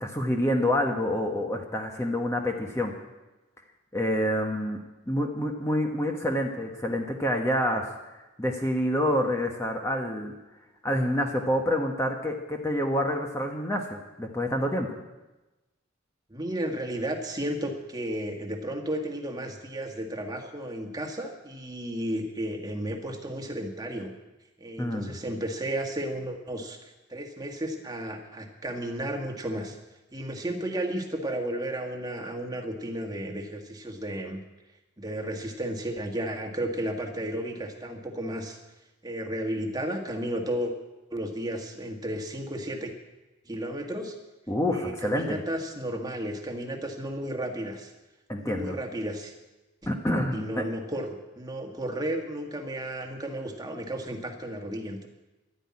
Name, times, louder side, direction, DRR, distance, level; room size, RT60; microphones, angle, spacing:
voice 1, 0.0-2.9 3.9-4.8 5.1-7.9 8.4-10.3 10.8-14.9 24.8-25.1 44.5-45.4 48.3-48.8 49.9-50.6, equal, 15° left, 2 dB, 1.1 m, -27 dB
voice 2, 16.3-24.1 24.6-29.8 30.1-34.4 35.0-38.6 39.0-40.7 41.1-42.9 43.5-44.1 44.7-47.9 48.4-49.3 50.3-55.1, right 1 dB, 20° right, 3 dB, 1.6 m, -33 dB
12.0 x 10.0 x 9.7 m, 1.1 s
head